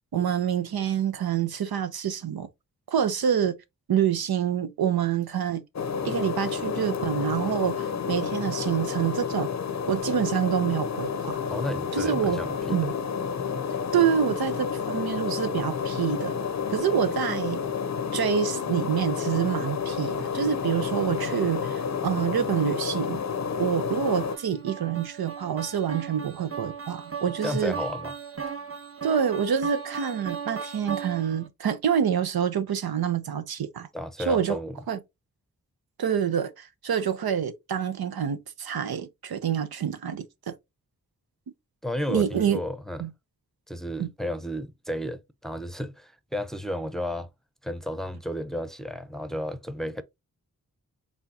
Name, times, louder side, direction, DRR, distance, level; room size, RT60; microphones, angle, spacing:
voice 1, 0.1-2.5 2.9-3.6 3.9-5.6 6.0-9.5 9.9-11.4 11.9-12.4 12.7-12.9 13.9-16.3 16.7-17.6 18.1-23.2 23.6-27.7 29.0-33.9 34.3-34.6 34.9-35.0 36.0-40.6 42.1-42.6 43.0-43.1 44.0-44.1, right 8 dB, 75° right, 0.7 m, -27 dB
sound 1, 5.7-24.4, left 6 dB, 50° left, 0.6 m, -30 dB
voice 2, 11.4-12.9 27.4-28.1 33.9-34.8 41.8-43.1 43.7-47.3 47.6-50.0, left 1 dB, ahead, 0.7 m, -33 dB
sound 2, 24.0-31.5, right 6 dB, 35° right, 1.0 m, -37 dB
4.3 x 3.5 x 2.7 m
cardioid pair, 40°, 37 cm